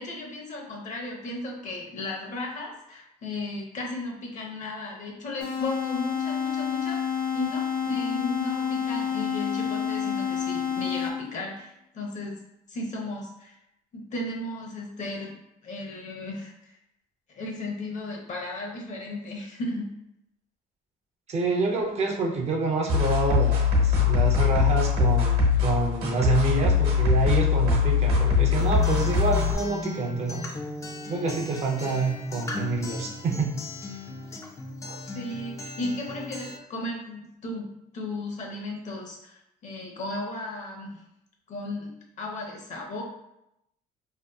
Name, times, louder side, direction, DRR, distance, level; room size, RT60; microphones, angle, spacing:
voice 1, 0.0-7.0 7.3-12.4 12.7-13.6 13.9-16.8 17.3-19.9 34.3-34.4 35.1-41.0 41.5-43.0, left 2 dB, 45° left, -1 dB, 0.7 m, -35 dB
sound 1, 5.4-11.4, left 7 dB, 75° left, 0.8 m, -29 dB
voice 2, 21.3-30.5 31.1-33.5 34.8-35.0, right 3 dB, 40° right, 0 dB, 0.5 m, -27 dB
sound 2, 22.9-29.5, left 6 dB, 65° right, 1.0 m, -22 dB
Acoustic guitar, 28.6-36.6, left 2 dB, 20° left, 0.4 m, -37 dB
2.7 x 2.4 x 2.3 m, 0.82 s
cardioid pair, 110°, 17 cm